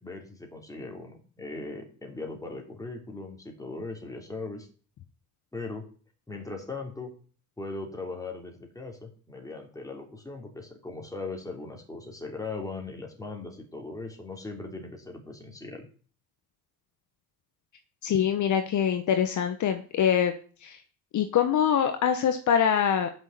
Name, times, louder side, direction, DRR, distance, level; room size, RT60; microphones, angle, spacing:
voice 1, 0.0-4.7 5.5-5.8 6.3-7.1 7.6-15.9, left 3 dB, 10° left, 1 dB, 3.2 m, -39 dB
voice 2, 18.0-20.3 20.6-20.8 21.1-23.1, left 8 dB, 55° left, 7 dB, 1.0 m, -24 dB
7.4 x 6.3 x 7.6 m, 0.41 s
cardioid pair, 90°, 36 cm